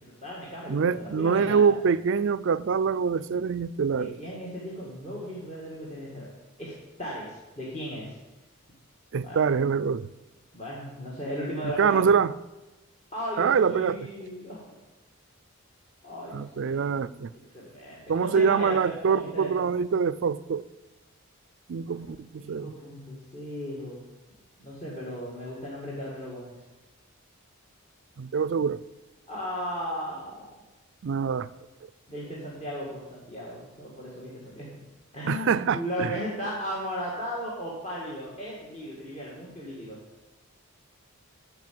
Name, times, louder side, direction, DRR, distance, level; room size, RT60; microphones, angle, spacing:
voice 1, 0.0-1.7 4.0-6.3 6.6-6.7 7.0-8.2 9.2-9.6 10.5-12.1 13.1-14.7 16.0-17.2 17.5-19.7 21.9-22.0 22.4-24.0 24.6-26.6 29.3-30.4 32.1-34.7 35.1-40.0, equal, 30° left, 2.0 m, -36 dB
voice 2, 0.7-4.2 9.1-10.1 11.6-12.3 13.4-14.0 16.3-17.3 18.1-20.6 21.7-22.7 28.2-28.8 31.0-31.5 35.3-36.2, right 6 dB, 55° right, 0.4 m, -25 dB
13.5 x 4.8 x 7.6 m
head